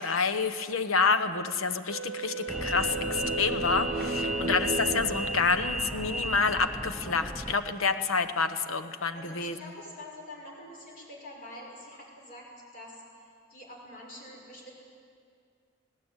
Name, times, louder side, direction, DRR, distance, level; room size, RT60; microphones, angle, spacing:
voice 1, 0.0-9.6, left 4 dB, 85° left, 10 dB, 1.1 m, -28 dB
Wind instrument woodwind instrument, 1.9-6.2, right 4 dB, 65° right, 0.7 m, -37 dB
sound 1, 2.3-6.2, right 2 dB, 30° right, 0.8 m, -36 dB
sound 2, 2.5-7.6, right 1 dB, ahead, 0.6 m, -35 dB
voice 2, 4.1-4.5 9.1-14.7, left 1 dB, 45° left, -2 dB, 6.1 m, -46 dB
19.5 x 17.5 x 9.0 m, 2.2 s
head